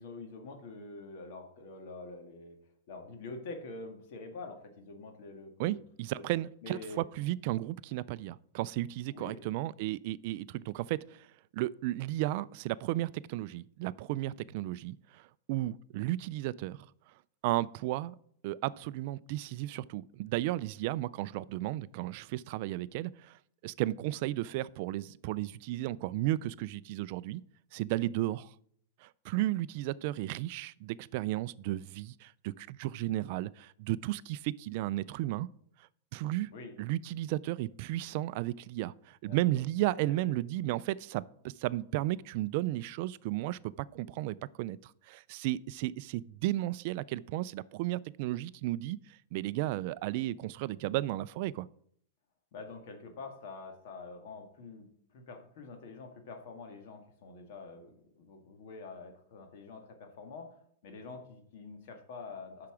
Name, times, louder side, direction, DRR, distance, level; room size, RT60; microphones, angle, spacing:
voice 1, 0.0-2.6 2.9-5.8 6.1-7.0 9.1-9.4 28.3-28.4 36.5-36.7 39.2-39.6 40.0-40.4 52.5-60.5 60.8-62.7, left 3 dB, 50° left, 1.9 m, -46 dB
voice 2, 5.6-11.3 11.5-16.8 17.4-18.1 18.4-27.4 27.7-28.5 29.0-35.5 36.1-36.5 36.8-51.7, right 16 dB, 45° right, 0.3 m, -34 dB
8.5 x 5.8 x 6.1 m
supercardioid pair, 160°, 0 cm